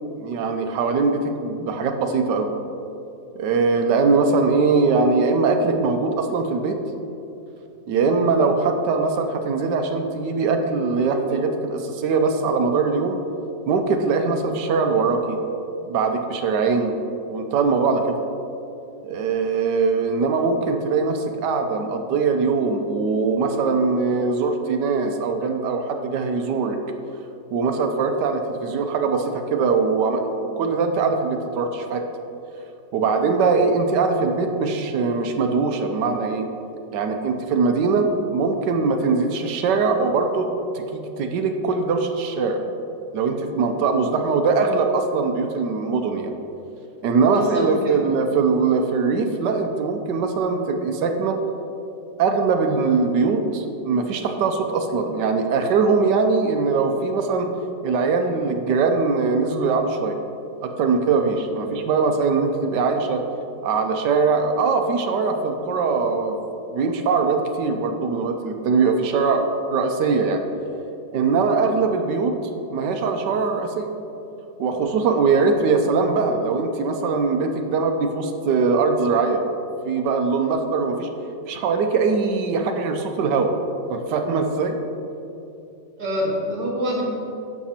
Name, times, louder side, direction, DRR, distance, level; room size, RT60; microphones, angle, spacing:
voice 1, 0.1-2.5 3.3-6.8 7.9-13.2 13.7-15.4 15.8-17.0 17.3-18.2 19.0-26.8 27.5-30.2 30.6-32.0 32.9-36.5 36.9-40.5 40.7-42.6 43.1-46.3 47.0-51.4 52.2-57.5 57.8-60.2 60.6-63.2 63.6-66.4 66.7-69.4 69.7-70.4 71.1-72.4 72.7-73.9 74.6-79.4 79.8-81.1 81.5-83.5 83.9-84.8, right 4 dB, 75° right, 5 dB, 1.2 m, -21 dB
voice 2, 47.2-47.9 86.0-87.0, equal, 55° right, -4 dB, 2.3 m, -26 dB
10.5 x 7.0 x 2.9 m, 2.8 s
omnidirectional pair, 2.0 m